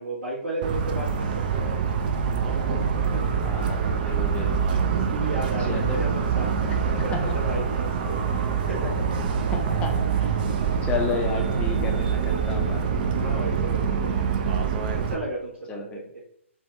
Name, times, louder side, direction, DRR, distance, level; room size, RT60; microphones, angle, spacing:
voice 1, 0.0-1.7 3.1-3.2 4.9-8.2 8.6-9.1 13.1-14.2 14.6-15.8 16.1-16.2, right 1 dB, 65° right, -9 dB, 1.3 m, -34 dB
Motor vehicle (road) / Siren, 0.6-15.1, right 6 dB, 40° right, 0.4 m, -25 dB
voice 2, 3.4-4.7 5.7-6.0 7.1-7.4 9.5-10.3 10.8-12.8 15.7-16.0, left 4 dB, 15° left, 2 dB, 0.5 m, -32 dB
3.3 x 2.3 x 3.0 m, 0.69 s
figure-of-eight pair, 130°, 7 cm